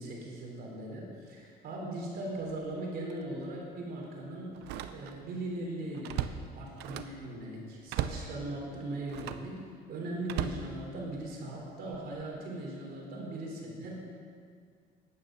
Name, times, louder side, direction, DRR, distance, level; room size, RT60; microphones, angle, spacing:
voice 1, 0.0-4.5 4.9-6.2 6.5-9.6 9.9-14.0, right 1 dB, 65° right, -2 dB, 3.4 m, -39 dB
Slam, 2.4-2.6 3.1-3.2 4.5-5.3 5.7-7.2 7.9-8.3 9.1-9.5 10.2-11.3 11.9-12.2, right 11 dB, 85° right, 0.6 m, -37 dB
10.5 x 8.9 x 6.4 m, 2.2 s
cardioid pair, 110°, 17 cm